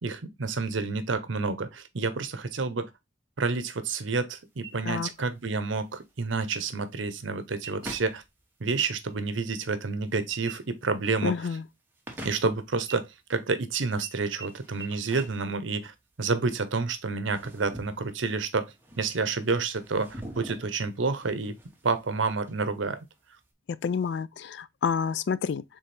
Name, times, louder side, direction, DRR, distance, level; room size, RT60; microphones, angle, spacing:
voice 1, 0.0-2.9 3.4-8.2 8.6-11.5 12.2-21.6 21.8-23.1, right 4 dB, 80° right, 0.7 m, -29 dB
sound 1, 4.3-23.5, equal, 10° right, 1.0 m, -48 dB
sound 2, 4.6-5.3 5.7-5.8 6.3-6.9 7.5-8.1 8.5-8.7 9.0-10.1 10.5-12.5 12.8-13.6 14.0-14.1 14.4-14.5 14.8-14.9 15.2-15.3, right 8 dB, 20° left, 1.2 m, -47 dB
voice 2, 11.2-11.6 23.8-25.6, left 6 dB, 60° left, 0.3 m, -29 dB
4.3 x 3.5 x 3.3 m
head